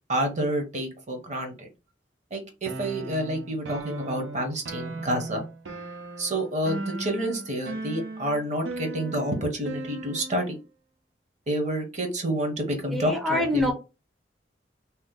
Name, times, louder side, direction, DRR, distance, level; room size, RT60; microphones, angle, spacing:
voice 1, 0.1-1.7 2.3-5.4 6.2-10.6 11.5-13.7, right 1 dB, 40° right, 4 dB, 0.9 m, -29 dB
sound 1, 2.6-10.5, right 2 dB, 90° right, 0.7 m, -37 dB
voice 2, 12.9-13.7, left 1 dB, ahead, 1 dB, 0.5 m, -25 dB
2.9 x 2.1 x 3.5 m, 0.29 s
head